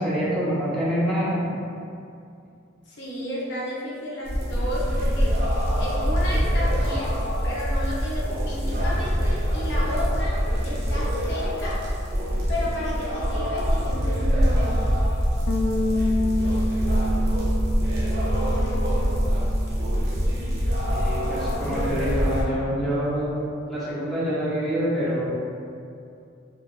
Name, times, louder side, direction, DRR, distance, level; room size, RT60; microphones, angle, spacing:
voice 1, 0.0-1.5 20.9-25.3, equal, ahead, -10 dB, 0.7 m, -26 dB
voice 2, 2.9-5.3 5.8-7.2 7.4-10.4 10.6-11.8 12.5-14.8, left 1 dB, 60° left, -6 dB, 0.8 m, -32 dB
sound 1, 4.2-22.4, equal, 50° right, 0.6 m, -24 dB
Bass guitar, 15.5-21.7, left 1 dB, 75° left, 0.3 m, -30 dB
3.5 x 2.4 x 2.4 m, 2.5 s
head